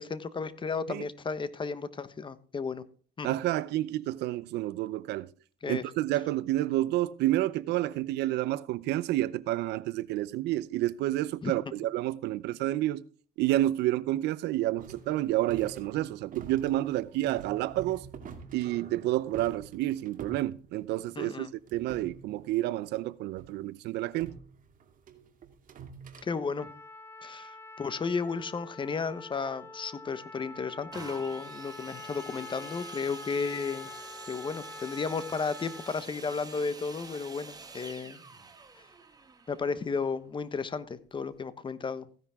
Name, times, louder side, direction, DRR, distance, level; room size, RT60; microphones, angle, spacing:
voice 1, 0.0-2.8 3.2-3.3 5.6-5.8 11.4-11.5 21.2-21.5 26.2-26.7 27.2-33.9 34.3-38.2 39.5-42.1, left 5 dB, 30° left, 1.2 m, -33 dB
voice 2, 3.2-5.3 5.7-13.0 13.4-18.1 18.5-24.3, right 15 dB, 80° right, 0.7 m, -29 dB
sound 1, 14.8-21.2 21.6-22.9 23.3-23.5 24.1-26.3, right 6 dB, 55° right, 2.3 m, -47 dB
Trumpet, 26.6-36.1, left 2 dB, 15° left, 1.9 m, -46 dB
sound 2, 30.9-40.6 41.3-41.4, right 4 dB, 25° right, 2.0 m, -48 dB
15.5 x 10.5 x 3.6 m
cardioid pair, 110°, 17 cm